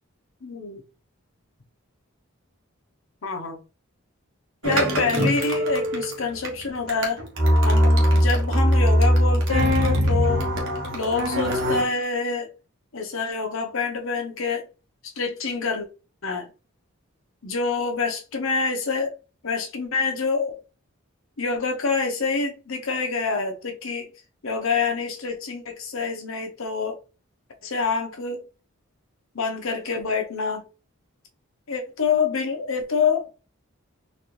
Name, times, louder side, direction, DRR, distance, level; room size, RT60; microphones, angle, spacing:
voice 1, 0.4-0.8 3.2-3.6 4.6-7.2 7.6-10.5 10.9-12.5 12.9-14.7 15.2-15.9 16.2-16.5 17.4-19.1 19.4-20.6 21.4-24.1 24.4-27.0 27.6-28.4 29.3-30.6 31.7-33.3, left 4 dB, 70° left, 0.9 m, -26 dB
sound 1, 4.6-11.8, equal, 60° right, 1.2 m, -21 dB
4.1 x 2.5 x 3.1 m
head